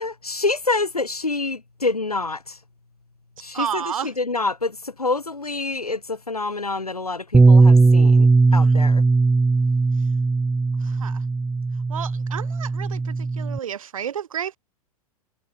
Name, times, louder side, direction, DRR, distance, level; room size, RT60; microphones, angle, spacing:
voice 1, 0.0-2.6 3.4-9.0, left 3 dB, 80° left, 7.0 m, -27 dB
voice 2, 3.5-4.1 8.5-8.7 11.0-11.2 11.9-14.6, right 9 dB, 65° right, 4.2 m, -31 dB
Bass guitar, 7.3-13.6, right 3 dB, 10° right, 4.3 m, -18 dB
figure-of-eight pair, 95°, 19 cm